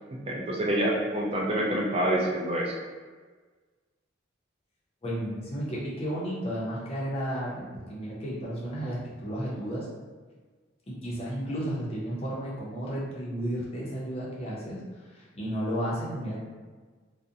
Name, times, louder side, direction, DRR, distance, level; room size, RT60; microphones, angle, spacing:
voice 1, 0.1-2.7, right 1 dB, 30° right, -2 dB, 0.4 m, -27 dB
voice 2, 5.0-9.9 10.9-14.8 15.1-16.4, equal, 30° left, -6 dB, 0.6 m, -33 dB
2.4 x 2.0 x 2.6 m, 1.4 s
head